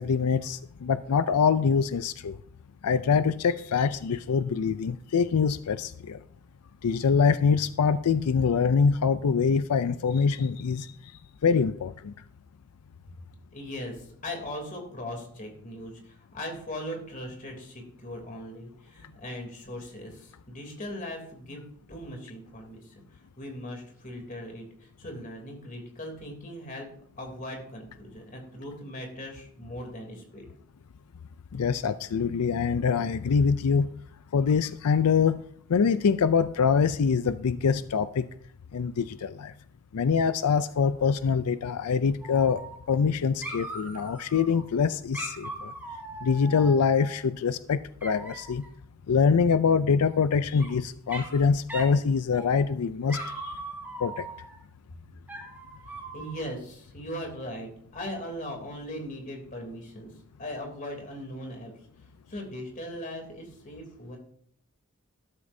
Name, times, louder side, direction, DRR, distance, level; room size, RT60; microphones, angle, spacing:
voice 1, 0.0-2.4 2.8-6.2 6.8-11.1 11.4-12.1 31.5-33.9 34.3-35.4 35.7-38.3 38.7-39.5 39.9-42.6 42.9-45.7 46.2-48.6 49.1-53.5 54.0-54.3, left 6 dB, 90° left, 13 dB, 0.4 m, -24 dB
voice 2, 13.5-26.9 27.2-30.4 56.1-60.1 60.4-61.7 62.3-64.2, left 1 dB, 35° left, 2 dB, 3.0 m, -39 dB
Dog, 42.2-43.1 43.4-44.6 45.1-47.2 48.0-48.7 50.1-50.7 51.1-51.4 51.7-52.0 52.3-52.7 53.1-54.6 55.3-56.5, right 2 dB, 10° right, 3.1 m, -40 dB
13.0 x 13.0 x 2.7 m, 0.64 s
head